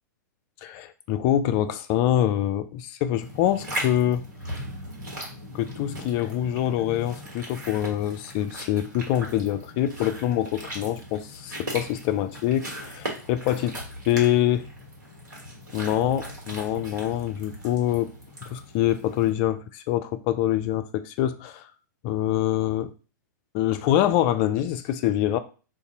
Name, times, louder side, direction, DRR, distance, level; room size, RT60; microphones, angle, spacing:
voice 1, 0.6-4.2 5.5-13.8 14.1-14.7 15.7-18.1 18.4-21.6 22.0-22.9 23.5-25.4, left 12 dB, 35° left, 0.4 m, -25 dB
sound 1, 3.2-19.3, equal, 70° right, 1.4 m, -38 dB
2.6 x 2.5 x 3.9 m
figure-of-eight pair, 105°, 10 cm